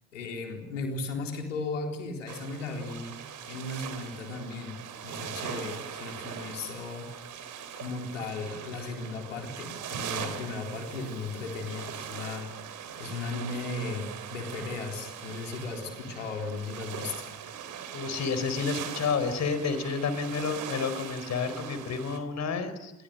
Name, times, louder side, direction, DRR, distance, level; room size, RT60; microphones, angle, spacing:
voice 1, 0.1-7.1 7.8-12.5 13.0-17.1, left 3 dB, 80° left, 3 dB, 4.0 m, -36 dB
sound 1, 2.3-22.2, right 8 dB, 50° right, 3.5 m, -41 dB
voice 2, 17.9-22.9, left 5 dB, 45° left, 11 dB, 4.5 m, -30 dB
28.0 x 22.5 x 6.7 m, 1.0 s
figure-of-eight pair, 50°, 37 cm